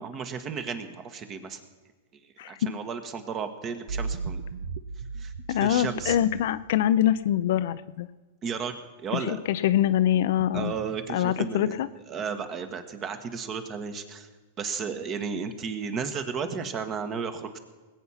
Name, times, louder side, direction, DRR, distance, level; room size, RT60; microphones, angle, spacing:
voice 1, 0.0-1.6 2.5-4.4 5.2-6.2 8.4-8.8 9.0-9.4 10.5-11.8 12.1-14.3 14.6-17.6, right 6 dB, 30° right, 8 dB, 1.5 m, -33 dB
voice 2, 2.4-2.7 5.5-8.1 9.1-10.7 11.1-11.9, left 11 dB, 65° left, 13 dB, 0.6 m, -24 dB
sound 1, 3.9-7.4, right 4 dB, 65° right, 0.8 m, -36 dB
20.0 x 8.5 x 5.8 m, 1.3 s
hypercardioid pair, 130°, 0 cm